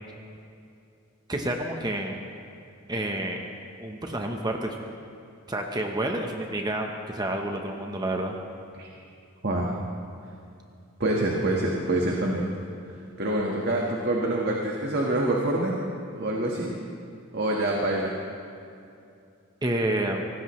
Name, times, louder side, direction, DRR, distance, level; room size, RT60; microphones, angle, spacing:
voice 1, 1.3-2.3 2.9-3.4 3.8-4.7 5.5-8.3 19.6-20.2, right 1 dB, 20° right, 2 dB, 1.0 m, -29 dB
voice 2, 9.4-9.7 11.0-12.4 12.9-15.7 16.1-16.7 17.3-18.1, right 1 dB, 50° right, -2 dB, 1.5 m, -26 dB
24.5 x 18.5 x 3.2 m, 2.5 s
head